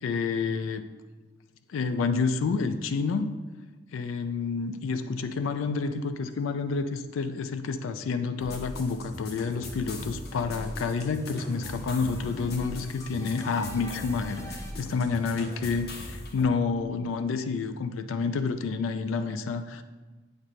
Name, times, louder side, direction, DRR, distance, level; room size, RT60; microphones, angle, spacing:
voice 1, 0.0-0.9 1.7-3.3 3.9-19.8, left 4 dB, 85° left, 9 dB, 0.3 m, -29 dB
sound 1, 8.3-14.7, left 1 dB, 15° left, 0.4 m, -50 dB
sound 2, 8.4-16.5, left 1 dB, 50° left, 0.9 m, -40 dB
7.7 x 4.2 x 3.1 m, 1.3 s
head